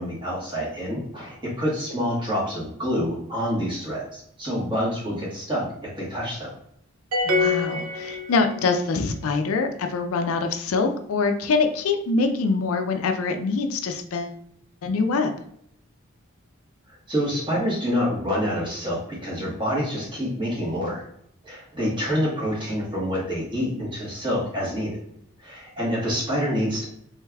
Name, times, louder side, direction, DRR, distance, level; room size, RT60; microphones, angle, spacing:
voice 1, 0.0-6.6 17.1-21.0 21.4-25.0 25.4-26.9, equal, 25° right, -5 dB, 1.2 m, -27 dB
sound 1, 7.1-8.8, left 3 dB, 90° right, 0.7 m, -25 dB
voice 2, 7.2-14.3 14.8-15.3, left 4 dB, 80° left, 6 dB, 0.4 m, -24 dB
3.4 x 3.2 x 2.3 m, 0.70 s
head